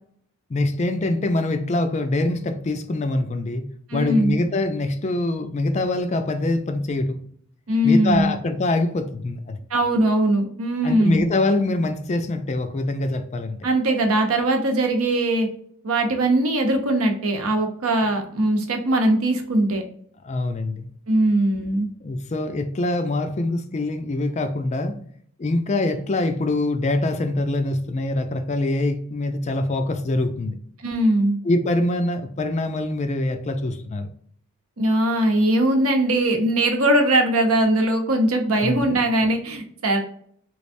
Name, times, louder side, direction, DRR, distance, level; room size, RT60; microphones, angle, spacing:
voice 1, 0.5-3.7 3.9-7.2 7.8-9.6 10.8-13.6 20.2-20.9 22.0-24.9 25.4-30.6 31.4-34.1 38.6-38.9, left 2 dB, 30° left, 7 dB, 0.4 m, -24 dB
voice 2, 3.9-4.4 7.7-8.3 9.7-11.2 13.6-15.5 15.8-19.8 21.1-21.9 30.8-31.4 34.8-40.0, right 1 dB, 75° right, 4 dB, 0.8 m, -20 dB
3.4 x 3.2 x 2.5 m, 0.63 s
head